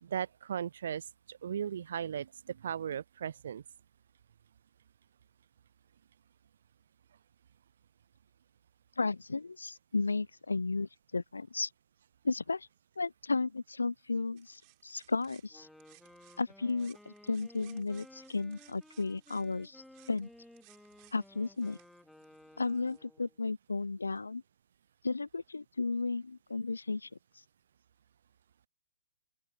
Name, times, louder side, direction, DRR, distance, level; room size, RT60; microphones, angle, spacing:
voice 1, 0.0-3.6, right 8 dB, 55° right, 0.5 m, -37 dB
voice 2, 9.0-11.7 12.2-12.7 13.0-15.7 16.4-20.3 21.1-21.8 22.6-24.4 25.0-27.1, left 3 dB, 80° left, 0.7 m, -34 dB
sound 1, 14.4-16.4 16.7-23.0, right 39 dB, 30° right, 7.4 m, -63 dB
Wind instrument woodwind instrument, 15.5-23.4, left 1 dB, ahead, 3.0 m, -57 dB
open air
figure-of-eight pair, 125°, 0 cm